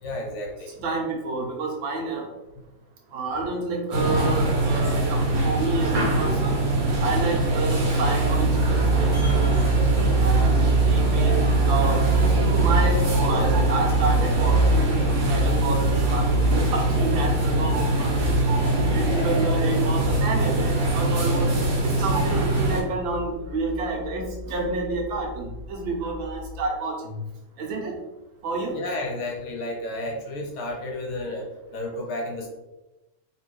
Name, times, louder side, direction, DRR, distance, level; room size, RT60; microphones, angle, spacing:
voice 1, 0.0-0.7 19.1-19.5 28.7-32.5, left 1 dB, 80° left, 0 dB, 1.8 m, -32 dB
voice 2, 0.8-2.3 3.1-6.6 7.0-9.3 10.2-18.4 18.9-21.5 21.8-27.2 27.6-27.9 28.4-28.8, right 3 dB, 70° right, 0 dB, 1.4 m, -29 dB
sound 1, 3.9-22.8, right 2 dB, 50° right, 1.3 m, -23 dB
sound 2, 7.9-26.6, right 2 dB, 60° left, 0.8 m, -27 dB
3.4 x 3.2 x 3.1 m, 1.0 s
omnidirectional pair, 2.3 m